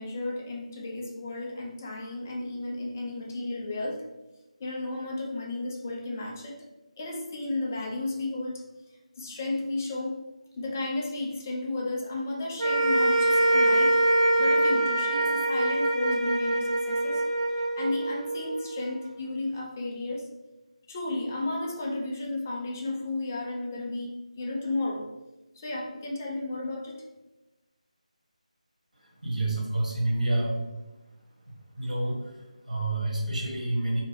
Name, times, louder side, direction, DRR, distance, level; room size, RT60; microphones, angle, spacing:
voice 1, 0.0-4.0 4.6-6.7 7.0-8.5 9.2-10.2 10.6-14.0 14.4-17.2 17.5-20.3 20.9-25.1 25.5-27.0, left 2 dB, 20° left, -2 dB, 0.4 m, -33 dB
sound 1, 12.6-19.0, right 1 dB, 65° right, 0.5 m, -24 dB
voice 2, 29.0-30.6 31.8-34.0, right 2 dB, 85° right, -2 dB, 1.2 m, -29 dB
2.8 x 2.7 x 3.0 m, 1.0 s
figure-of-eight pair, 170°, 4 cm